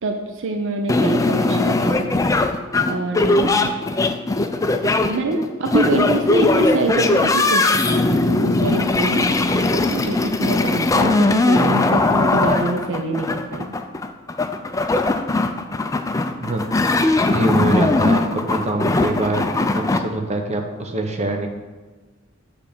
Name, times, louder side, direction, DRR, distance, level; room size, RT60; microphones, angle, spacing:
voice 1, 0.0-2.1 2.9-3.8 5.1-9.3 9.7-13.7, right 2 dB, 60° right, 4 dB, 0.6 m, -24 dB
sound 1, 0.9-20.0, left 2 dB, 15° left, 0.4 m, -19 dB
voice 2, 17.3-21.5, right 2 dB, 30° right, 3 dB, 0.9 m, -24 dB
8.3 x 3.5 x 6.7 m, 1.3 s
head